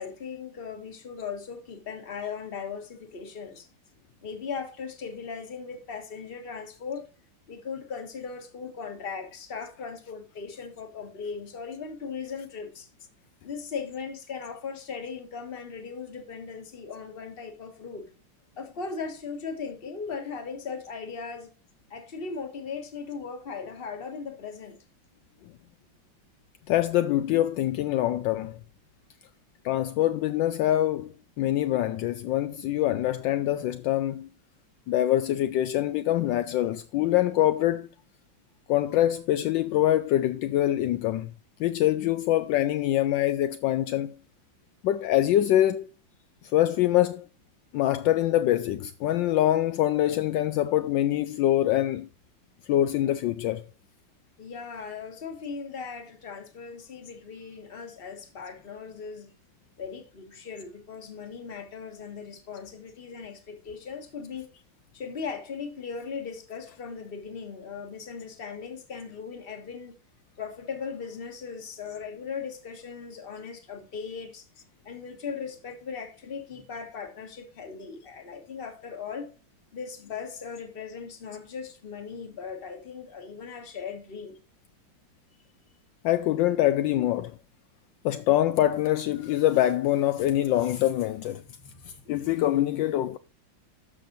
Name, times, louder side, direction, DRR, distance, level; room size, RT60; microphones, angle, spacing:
voice 1, 0.0-3.7 4.2-7.0 7.5-12.9 13.4-18.1 18.6-21.5 21.9-24.8 54.4-59.3 59.8-64.5 64.9-69.9 70.4-74.4 74.8-79.3 79.7-84.4 91.7-91.8, left 5 dB, 30° left, 1.4 m, -38 dB
voice 2, 26.7-28.6 29.6-34.3 34.9-37.9 38.7-41.3 41.6-44.1 44.8-45.9 46.5-47.3 47.7-52.1 52.7-53.6 86.0-87.4 88.0-91.4 92.1-93.2, left 13 dB, 75° left, 1.2 m, -24 dB
13.0 x 5.9 x 2.5 m
omnidirectional pair, 2.1 m